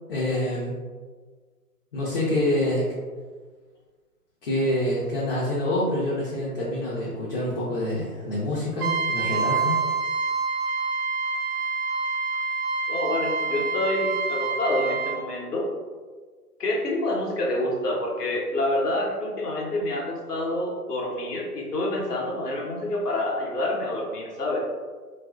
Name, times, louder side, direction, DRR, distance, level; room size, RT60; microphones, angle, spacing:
voice 1, 0.1-0.8 1.9-2.9 4.4-9.8, left 1 dB, 40° left, -7 dB, 0.5 m, -26 dB
Trumpet, 8.8-15.2, right 4 dB, 70° right, 0.6 m, -27 dB
voice 2, 12.9-15.7 16.6-24.6, left 1 dB, 80° left, -2 dB, 0.8 m, -27 dB
2.6 x 2.4 x 2.3 m, 1.5 s
figure-of-eight pair, 125°, 47 cm